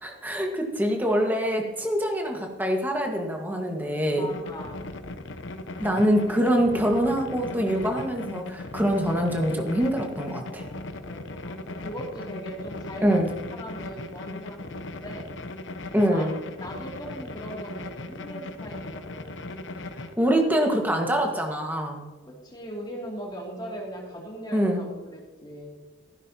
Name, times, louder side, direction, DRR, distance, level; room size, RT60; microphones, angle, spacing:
voice 1, 0.0-4.3 5.8-10.6 13.0-13.3 15.9-16.3 20.2-22.1 24.5-24.9, equal, 10° right, 2 dB, 1.6 m, -24 dB
voice 2, 4.1-4.9 10.4-15.3 16.1-16.3 16.6-19.5 20.0-20.1 22.4-25.8, equal, 20° left, -2 dB, 2.7 m, -39 dB
sound 1, 4.3-20.1, left 2 dB, 80° left, 0.8 m, -38 dB
14.5 x 11.5 x 2.9 m, 1.2 s
head